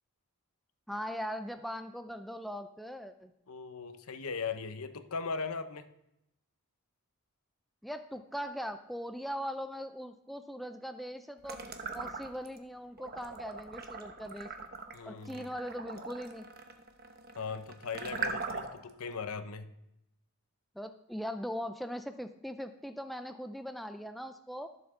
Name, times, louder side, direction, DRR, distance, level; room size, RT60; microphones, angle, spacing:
voice 1, 0.9-3.3 7.8-14.5 15.1-16.5 20.8-24.7, equal, ahead, 8 dB, 0.3 m, -40 dB
voice 2, 3.5-5.9 14.9-15.5 17.4-19.7, left 5 dB, 75° left, 10 dB, 0.8 m, -39 dB
sound 1, 11.4-12.6 13.0-18.9, right 4 dB, 45° right, 0.9 m, -40 dB
14.5 x 7.1 x 3.7 m, 0.86 s
head